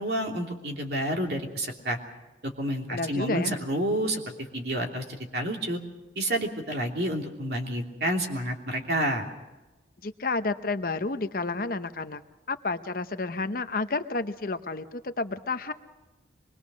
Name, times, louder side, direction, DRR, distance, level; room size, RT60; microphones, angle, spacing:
voice 1, 0.0-2.0 2.4-4.2 4.5-5.0 5.3-5.8 6.1-9.2, right 1 dB, 60° right, 1 dB, 3.1 m, -29 dB
voice 2, 2.9-3.6 10.0-12.2 12.5-15.7, left 3 dB, 50° left, 9 dB, 0.9 m, -30 dB
25.0 x 21.5 x 6.3 m, 1.1 s
head